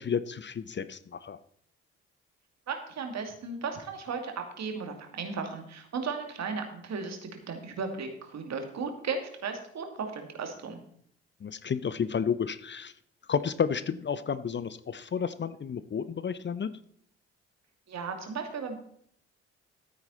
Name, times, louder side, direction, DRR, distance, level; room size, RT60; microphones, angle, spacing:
voice 1, 0.0-1.4 11.4-12.9 13.3-16.7, left 7 dB, 35° left, 15 dB, 0.7 m, -31 dB
voice 2, 2.7-10.8 17.9-18.8, right 5 dB, 55° right, 5 dB, 2.4 m, -35 dB
13.0 x 9.0 x 4.2 m, 0.65 s
hypercardioid pair, 45°, 32 cm